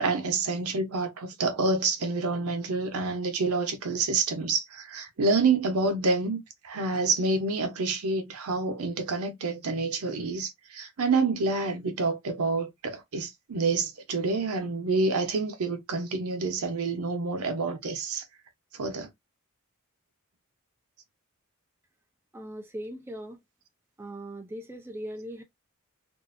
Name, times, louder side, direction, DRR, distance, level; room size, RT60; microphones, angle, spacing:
voice 1, 0.0-18.2 18.8-19.1, right 3 dB, 85° right, 0.6 m, -28 dB
voice 2, 22.3-23.4 24.0-25.4, right 1 dB, 10° right, 0.4 m, -39 dB
2.5 x 2.0 x 2.4 m
head